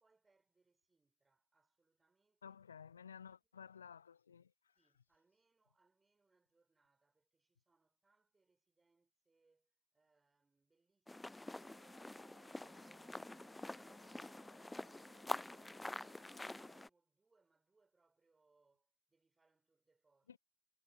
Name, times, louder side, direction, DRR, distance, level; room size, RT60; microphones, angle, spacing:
voice 1, 0.0-2.6 3.2-3.7 4.7-20.3, right 3 dB, 10° right, 7.8 m, -80 dB
voice 2, 2.4-4.7 20.3-20.4, left 7 dB, 70° left, 0.4 m, -55 dB
sound 1, 11.1-16.9, left 2 dB, 5° left, 0.3 m, -47 dB
sound 2, 11.6-16.9, right 19 dB, 40° right, 3.9 m, -71 dB
figure-of-eight pair, 90°, 0 cm